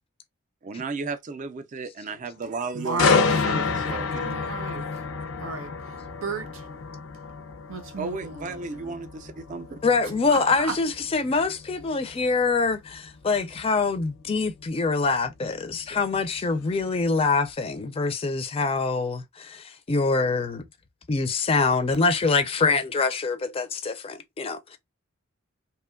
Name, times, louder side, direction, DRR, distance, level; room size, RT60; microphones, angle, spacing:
voice 1, 0.6-3.4 3.9-4.1 8.0-9.8, right 4 dB, 40° right, 0.4 m, -33 dB
voice 2, 2.7-4.9 5.4-6.7 7.7-9.0 10.3-10.8, right 4 dB, 85° right, 0.7 m, -34 dB
sound 1, 3.0-16.8 17.2-17.5, left 5 dB, 90° left, 0.5 m, -30 dB
voice 3, 9.8-20.6 21.1-24.8, left 4 dB, 30° left, 0.4 m, -25 dB
2.9 x 2.2 x 2.2 m
head